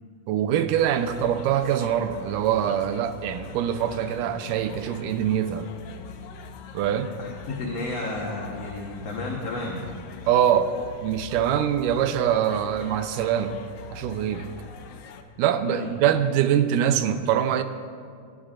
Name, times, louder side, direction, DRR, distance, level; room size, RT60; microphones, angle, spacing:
voice 1, 0.3-5.7 6.7-7.1 10.3-10.7 11.0-13.6 13.9-14.5 15.4-17.6, right 10 dB, 85° right, 10 dB, 2.2 m, -23 dB
sound 1, 0.7-15.2, left 5 dB, 85° left, 1.3 m, -43 dB
voice 2, 7.2-9.9 15.6-15.9, left 2 dB, 60° left, -2 dB, 2.1 m, -32 dB
23.0 x 14.0 x 2.5 m, 2.2 s
omnidirectional pair, 3.7 m